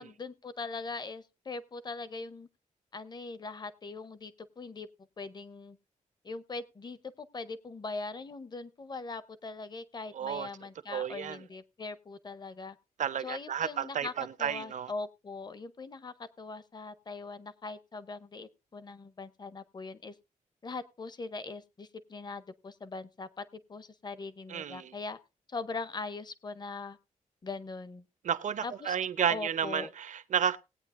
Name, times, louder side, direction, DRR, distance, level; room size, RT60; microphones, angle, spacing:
voice 1, 0.0-2.5 2.9-4.9 5.2-5.8 6.2-12.8 13.2-14.1 14.4-20.1 20.6-25.2 25.5-27.0 27.4-28.0 28.6-29.0 29.3-29.9, left 3 dB, 30° left, 0.7 m, -41 dB
voice 2, 10.1-10.5 10.9-11.4 13.0-14.9 24.5-24.9 28.2-30.6, right 8 dB, 65° right, 0.7 m, -32 dB
19.0 x 8.8 x 2.5 m
wide cardioid pair, 150°, 14 cm